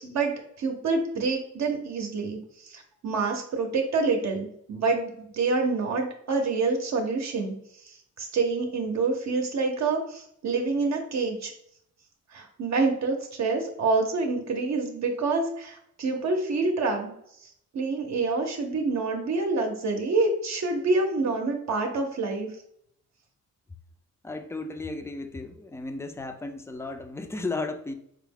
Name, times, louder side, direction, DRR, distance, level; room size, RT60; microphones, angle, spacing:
voice 1, 0.0-7.5 7.8-11.5 12.3-17.1 17.7-22.5, right 3 dB, 60° right, 2 dB, 0.6 m, -27 dB
voice 2, 24.2-27.9, left 3 dB, 10° left, 7 dB, 0.3 m, -34 dB
4.7 x 2.0 x 3.5 m, 0.71 s
wide cardioid pair, 130°, 31 cm